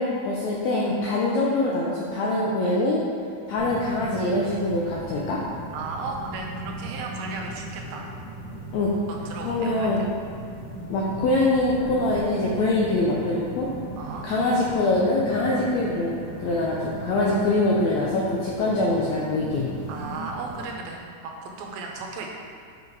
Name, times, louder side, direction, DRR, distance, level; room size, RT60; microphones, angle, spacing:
voice 1, 0.0-3.0 3.5-5.4 8.7-8.9 9.4-10.1 10.9-13.7 14.2-16.1 16.4-19.7, left 2 dB, 80° left, -4 dB, 1.6 m, -24 dB
sound 1, 3.6-20.7, right 1 dB, 65° right, 1.2 m, -37 dB
voice 2, 5.7-8.1 9.1-9.9 14.0-14.3 17.3-17.4 19.9-22.3, right 4 dB, 85° right, 1 dB, 2.7 m, -35 dB
7.5 x 5.3 x 4.7 m, 2.2 s
omnidirectional pair, 4.1 m